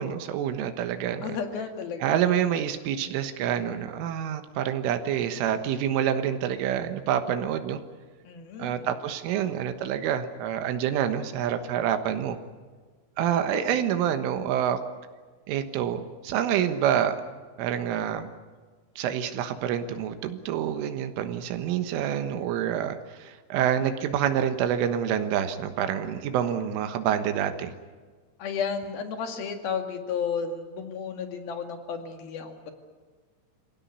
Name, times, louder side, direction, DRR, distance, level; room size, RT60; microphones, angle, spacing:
voice 1, 0.0-1.3 2.0-7.8 8.6-12.4 13.2-14.8 15.5-17.2 17.6-18.3 19.0-27.7, right 9 dB, 80° right, 8 dB, 3.8 m, -27 dB
voice 2, 1.2-2.2 8.2-8.9 13.5-13.8 28.4-32.7, left 6 dB, 55° left, 6 dB, 3.6 m, -33 dB
27.5 x 17.0 x 9.5 m, 1.5 s
omnidirectional pair, 5.6 m